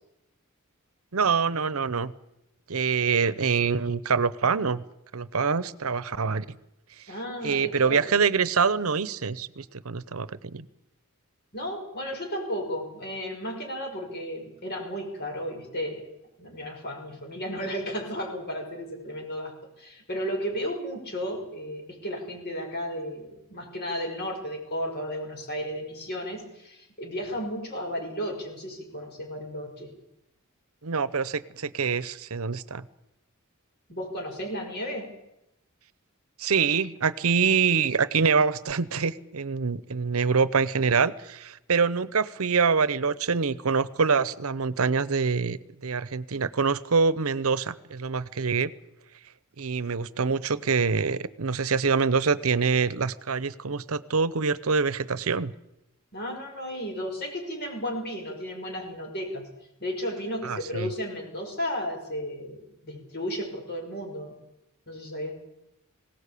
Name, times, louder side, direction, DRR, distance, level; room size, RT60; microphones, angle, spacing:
voice 1, 1.1-2.1 2.7-4.8 5.1-6.5 7.4-10.7 30.8-32.8 36.4-48.7 49.6-55.5 60.4-60.9, right 5 dB, 75° right, 17 dB, 0.8 m, -25 dB
voice 2, 7.1-8.1 11.5-16.0 16.4-29.9 33.9-35.1 56.1-59.5 59.8-64.4 64.9-65.3, equal, 50° left, 3 dB, 5.8 m, -34 dB
20.0 x 17.5 x 8.4 m, 0.89 s
head